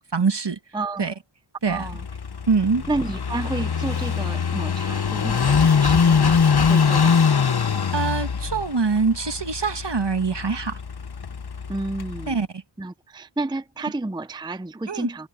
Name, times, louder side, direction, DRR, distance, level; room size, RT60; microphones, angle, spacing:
voice 1, 0.1-0.6 1.0-1.1 1.6-1.9 2.5-2.8 5.5-5.7 7.9-10.8 12.3-12.6 14.9-15.1, right 4 dB, 55° right, 1.7 m, -24 dB
voice 2, 0.7-1.1 1.7-2.0 2.9-7.2 11.7-12.4 12.8-15.3, right 2 dB, 10° right, 0.6 m, -31 dB
Car passing by / Idling, 1.7-12.4, left 6 dB, 50° left, 1.0 m, -22 dB
wide cardioid pair, 50°, 49 cm